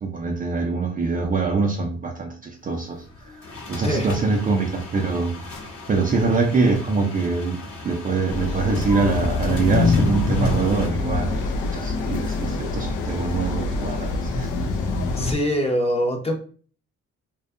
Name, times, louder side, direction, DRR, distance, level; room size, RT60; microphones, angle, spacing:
voice 1, 0.0-3.4 3.7-14.5, right 4 dB, 30° right, 1 dB, 0.4 m, -24 dB
sound 1, 2.7-10.9, left 3 dB, 50° left, 0.8 m, -37 dB
sound 2, 8.3-15.3, left 3 dB, 90° left, 0.5 m, -24 dB
voice 2, 15.2-16.3, equal, 20° left, 2 dB, 0.6 m, -23 dB
2.6 x 2.2 x 2.4 m, 0.42 s
cardioid pair, 90°, 30 cm